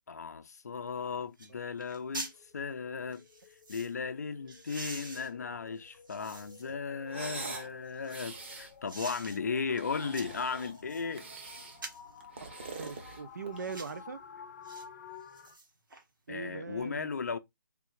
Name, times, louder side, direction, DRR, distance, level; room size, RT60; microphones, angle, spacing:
voice 1, 0.1-3.2 3.7-11.3 16.3-17.4, left 5 dB, 55° left, 0.5 m, -36 dB
sound 1, 0.9-1.0 1.4-1.5 1.8-2.4 3.1-3.9 4.5-6.8 7.2-8.4 8.9-9.4 9.8-11.1 11.7-12.1 12.7-12.9 13.6-14.0 14.6-14.9 15.2-16.0 16.4-16.5, right 2 dB, 75° right, 1.2 m, -46 dB
sound 2, 2.3-15.5, left 6 dB, 30° left, 0.8 m, -53 dB
sound 3, 7.1-7.7 8.0-8.7 9.6-10.7 11.1-11.8 12.2-13.7, right 3 dB, 35° right, 0.8 m, -44 dB
voice 2, 12.8-14.2 16.3-17.1, right 5 dB, 55° right, 0.4 m, -40 dB
3.5 x 2.3 x 3.0 m
hypercardioid pair, 165°, 11 cm